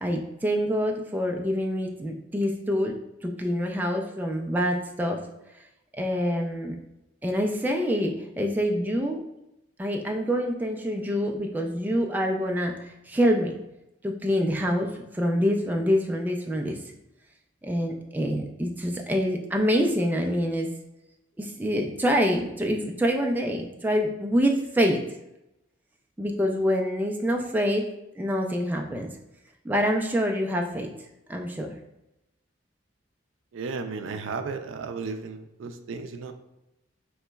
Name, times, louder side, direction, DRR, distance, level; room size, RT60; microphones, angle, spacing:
voice 1, 0.0-5.2 6.0-6.8 7.2-9.3 9.8-13.6 14.0-16.8 17.6-20.7 21.4-25.0 26.2-27.9 28.2-29.1 29.6-30.9 31.3-31.8, equal, 10° right, 2 dB, 0.3 m, -26 dB
voice 2, 33.5-36.3, right 4 dB, 80° right, 8 dB, 0.4 m, -34 dB
5.5 x 3.0 x 2.2 m, 0.91 s
head